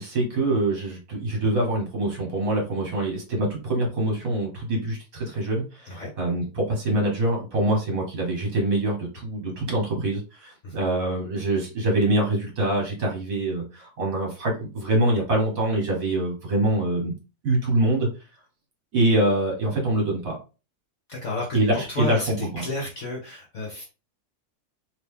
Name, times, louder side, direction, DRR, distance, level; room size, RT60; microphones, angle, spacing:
voice 1, 0.0-17.1 17.4-18.1 18.9-20.4 21.5-22.6, right 1 dB, 50° right, -1 dB, 1.5 m, -25 dB
voice 2, 21.1-23.9, left 2 dB, 50° left, -2 dB, 1.0 m, -32 dB
3.0 x 2.8 x 3.5 m, 0.32 s
omnidirectional pair, 2.0 m